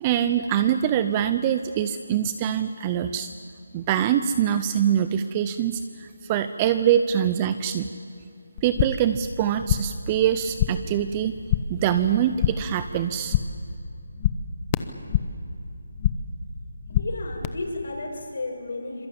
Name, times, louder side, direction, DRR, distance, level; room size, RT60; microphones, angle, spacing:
voice 1, 0.0-3.3 3.7-7.9 8.6-11.4 11.7-13.4, right 9 dB, 20° right, 11 dB, 0.6 m, -24 dB
sound 1, 8.6-9.1 9.4-10.0 10.3-11.0 11.2-11.8 12.1-12.8 13.1-13.7 13.9-15.5 15.8-16.4 16.7-17.5, left 10 dB, 20° left, 0.8 m, -27 dB
voice 2, 16.9-19.1, left 2 dB, 65° left, 1 dB, 7.2 m, -33 dB
26.0 x 23.0 x 8.7 m, 2.5 s
figure-of-eight pair, 170°, 0 cm